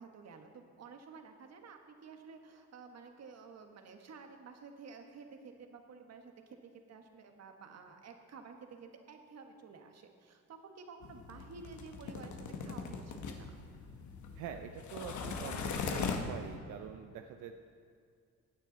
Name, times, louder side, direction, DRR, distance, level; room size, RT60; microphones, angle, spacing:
voice 1, 0.0-13.5, right 5 dB, 60° right, 5 dB, 1.4 m, -52 dB
sound 1, 11.0-16.6, left 5 dB, 75° left, 1.2 m, -40 dB
voice 2, 14.3-17.5, right 8 dB, 90° right, 6 dB, 0.6 m, -45 dB
15.5 x 9.2 x 4.0 m, 2.2 s
cardioid pair, 90°, 30 cm